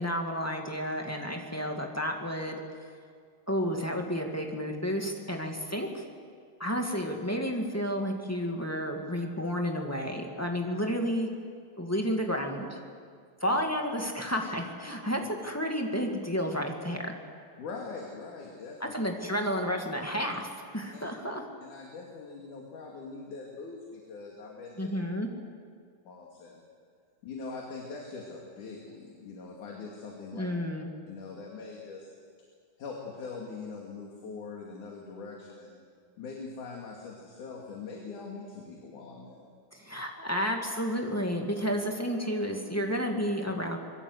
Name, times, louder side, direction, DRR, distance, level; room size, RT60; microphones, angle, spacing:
voice 1, 0.0-2.6 3.5-6.0 6.6-11.3 11.8-12.7 13.4-17.1 18.8-21.4 24.8-25.3 30.3-30.9 39.7-43.8, equal, 5° left, 1 dB, 1.3 m, -31 dB
voice 2, 17.6-18.9 20.9-21.1 21.6-24.9 26.1-26.6 27.2-30.5 31.1-32.1 32.8-35.8 36.2-39.5, left 4 dB, 60° left, -1 dB, 3.9 m, -42 dB
26.5 x 22.0 x 8.2 m, 2.1 s
omnidirectional pair, 4.2 m